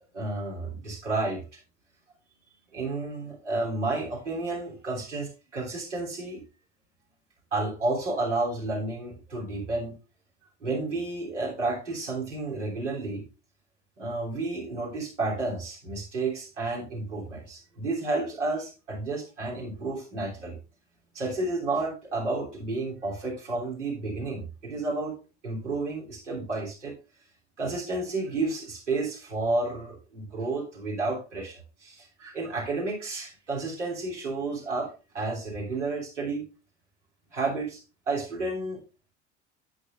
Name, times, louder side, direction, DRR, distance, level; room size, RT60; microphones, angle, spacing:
voice 1, 0.1-1.4 2.7-6.4 7.5-10.0 10.6-13.2 14.0-20.6 21.1-25.2 25.4-26.9 27.6-36.5 37.3-38.8, right 3 dB, 85° right, -4 dB, 3.2 m, -31 dB
11.0 x 8.4 x 2.5 m, 0.32 s
figure-of-eight pair, 65°, 35 cm